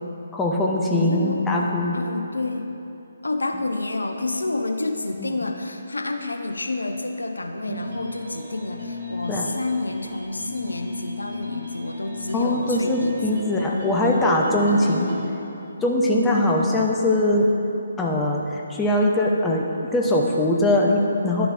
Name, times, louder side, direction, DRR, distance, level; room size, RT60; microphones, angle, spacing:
voice 1, 0.3-2.0 5.2-5.3 7.7-7.8 9.3-9.5 12.3-15.1 15.8-17.5 18.0-19.7 19.9-21.5, left 1 dB, 10° left, -2 dB, 0.7 m, -21 dB
voice 2, 0.9-2.7 3.2-13.5 14.7-15.3, left 2 dB, 75° left, 6 dB, 0.5 m, -29 dB
sound 1, 7.7-15.3, left 2 dB, 50° right, 1.4 m, -35 dB
11.0 x 7.0 x 2.6 m, 2.8 s
figure-of-eight pair, 140°, 0 cm